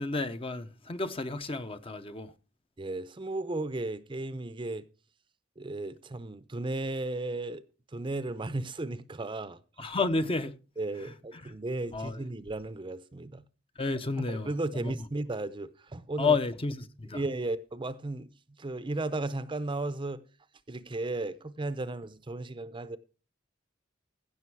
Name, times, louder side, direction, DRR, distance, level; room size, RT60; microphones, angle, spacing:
voice 1, 0.0-2.3 9.8-10.6 11.0-11.5 11.9-12.2 13.8-14.9 16.2-17.2, left 3 dB, 30° left, 0.7 m, -31 dB
voice 2, 2.8-4.8 5.6-7.6 7.9-9.9 10.8-13.4 14.2-16.4 17.1-18.3 18.6-20.2 20.7-23.0, right 2 dB, 25° right, 0.6 m, -35 dB
16.0 x 6.3 x 4.6 m
head